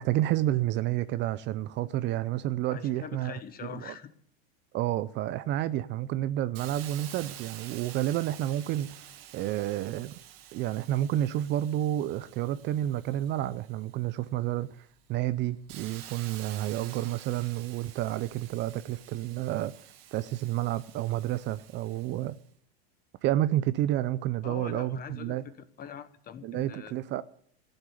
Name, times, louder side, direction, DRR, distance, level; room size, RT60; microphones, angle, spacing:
voice 1, 0.0-3.4 3.7-3.9 4.7-10.1 10.5-19.7 20.1-22.4 23.2-25.4 26.4-27.2, right 13 dB, 35° right, 0.5 m, -30 dB
voice 2, 2.7-4.1 24.4-26.9, left 8 dB, 30° left, 1.2 m, -43 dB
Hiss, 6.6-14.1 14.6-22.4, right 11 dB, 65° right, 2.0 m, -49 dB
14.5 x 7.9 x 9.8 m
supercardioid pair, 125°, 32 cm